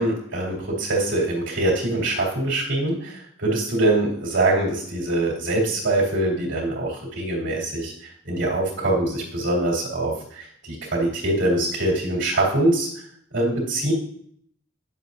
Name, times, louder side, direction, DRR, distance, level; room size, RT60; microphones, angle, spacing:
voice 1, 0.0-12.9 13.3-13.9, right 2 dB, 85° right, -6 dB, 2.7 m, -23 dB
10.0 x 7.2 x 2.6 m, 0.65 s
head